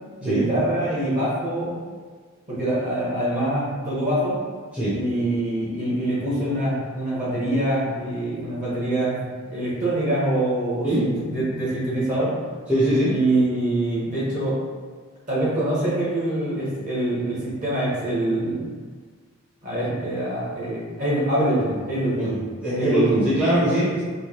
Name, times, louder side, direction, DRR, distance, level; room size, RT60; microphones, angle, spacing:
voice 1, 0.2-1.7 2.5-4.4 4.9-12.3 13.1-14.6 15.3-18.6 19.6-22.4 22.7-23.3, right 1 dB, 35° right, -8 dB, 1.4 m, -24 dB
voice 2, 12.7-13.1 22.2-24.0, right 1 dB, 5° right, -12 dB, 0.8 m, -22 dB
4.7 x 2.3 x 3.0 m, 1.6 s
head